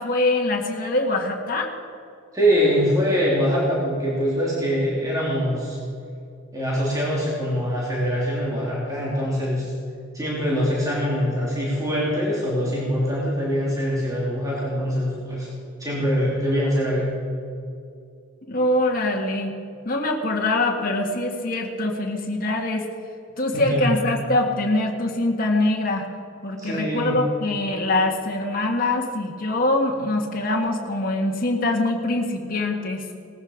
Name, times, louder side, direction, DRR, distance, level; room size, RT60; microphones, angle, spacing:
voice 1, 0.0-1.8 18.5-19.6 19.8-22.9 23.4-26.1 26.4-33.0, left 2 dB, 45° left, 0 dB, 1.7 m, -23 dB
voice 2, 2.3-5.8 6.5-9.7 10.1-15.5 15.8-17.1 23.5-23.9 26.6-27.1, equal, 20° right, -6 dB, 3.0 m, -23 dB
18.5 x 14.0 x 5.1 m, 2.4 s
head